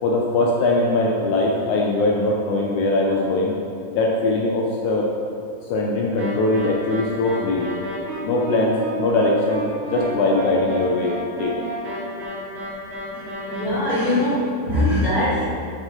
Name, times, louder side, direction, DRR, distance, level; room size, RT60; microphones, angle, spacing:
voice 1, 0.0-3.5 3.9-5.1 5.7-7.7 8.2-11.5, left 2 dB, 80° left, -1 dB, 1.7 m, -21 dB
sound 1, 6.2-13.6, right 1 dB, 65° right, 3.7 m, -31 dB
voice 2, 13.1-15.4, left 1 dB, 30° left, -11 dB, 2.0 m, -22 dB
11.0 x 6.4 x 3.8 m, 2.5 s
omnidirectional pair, 4.4 m